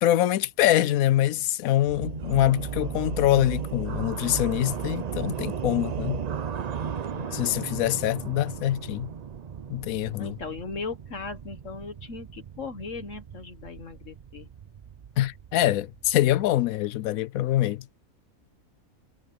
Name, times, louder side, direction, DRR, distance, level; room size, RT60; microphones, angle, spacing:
voice 1, 0.0-6.2 7.3-9.1 9.7-10.4 15.2-17.9, left 13 dB, 75° left, 1.0 m, -24 dB
sound 1, 1.9-16.7, right 7 dB, 65° right, 0.4 m, -35 dB
voice 2, 7.1-7.9 10.2-14.5, left 4 dB, 60° left, 1.6 m, -38 dB
omnidirectional pair, 1.5 m